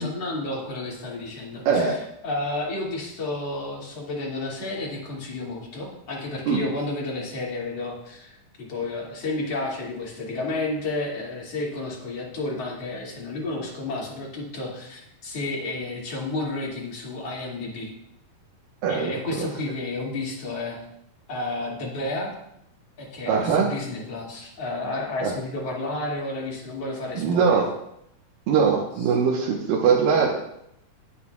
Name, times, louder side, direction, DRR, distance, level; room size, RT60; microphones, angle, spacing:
voice 1, 0.0-8.3 8.6-17.9 18.9-20.8 21.3-22.3 23.0-27.6, left 2 dB, 50° left, -4 dB, 3.4 m, -31 dB
voice 2, 1.7-2.0 6.5-6.6 18.8-19.5 23.3-23.7 25.2-25.3 27.2-27.7 28.5-30.3, right 6 dB, 90° right, -3 dB, 2.8 m, -21 dB
18.0 x 8.1 x 2.4 m, 0.77 s
omnidirectional pair, 3.9 m